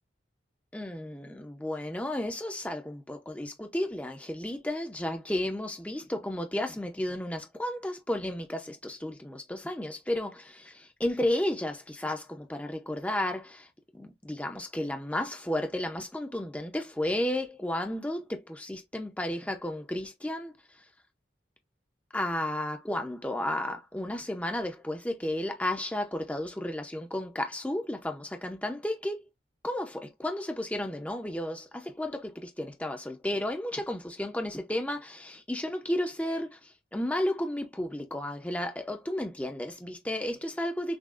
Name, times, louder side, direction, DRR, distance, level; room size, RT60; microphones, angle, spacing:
voice 1, 0.7-13.7 13.9-20.5 22.1-29.2 29.6-41.0, left 1 dB, 5° left, 0.6 m, -33 dB
6.1 x 2.5 x 2.4 m
head